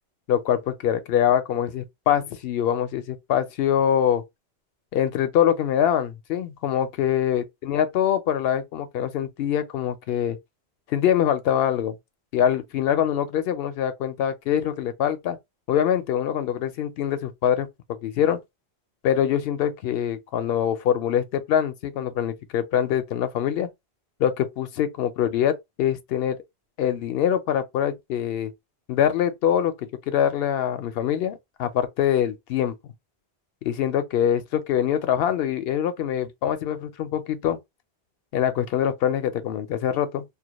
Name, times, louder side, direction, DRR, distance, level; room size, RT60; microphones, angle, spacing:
voice 1, 0.3-4.2 4.9-10.4 10.9-12.0 12.3-15.4 15.7-18.4 19.0-23.7 24.2-26.4 26.8-28.5 28.9-32.9 33.6-37.6 38.3-40.2, left 9 dB, 70° left, 0.8 m, -24 dB
2.2 x 2.1 x 2.8 m
omnidirectional pair, 1.1 m